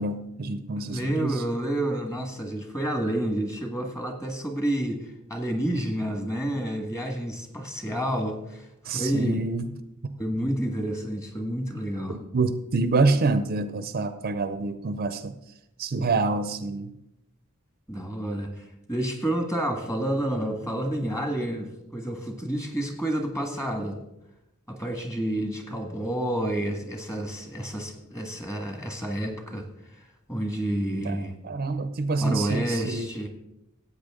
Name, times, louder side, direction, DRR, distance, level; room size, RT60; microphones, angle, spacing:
voice 1, 0.0-1.4 8.8-9.7 10.0-10.2 12.1-15.4 15.8-17.0 31.0-31.2 31.4-33.1, right 3 dB, 45° right, 10 dB, 0.6 m, -27 dB
voice 2, 0.7-9.4 10.2-12.2 16.0-16.1 17.9-24.0 24.7-31.3 32.2-33.3, right 1 dB, 15° left, 4 dB, 1.7 m, -29 dB
15.0 x 8.6 x 3.7 m, 0.86 s
head